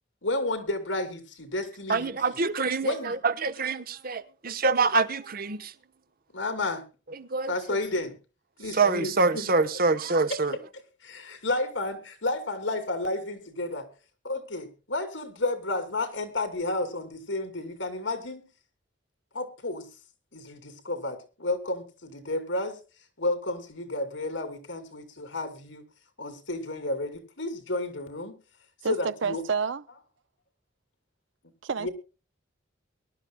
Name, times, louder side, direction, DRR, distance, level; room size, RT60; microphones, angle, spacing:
voice 1, 0.2-2.1 2.8-3.2 6.3-6.8 7.5-8.2 8.6-10.0 11.0-13.9 14.2-18.4 19.3-19.9 20.3-22.8 23.2-25.8 26.2-28.3 28.8-29.4 31.8-31.9, left 2 dB, 90° left, 2.8 m, -31 dB
voice 2, 1.9-5.7 7.1-7.8 8.7-10.5, right 4 dB, 50° right, 0.9 m, -26 dB
voice 3, 28.8-29.8 31.6-31.9, right 5 dB, 80° right, 0.6 m, -29 dB
23.0 x 11.5 x 2.2 m
head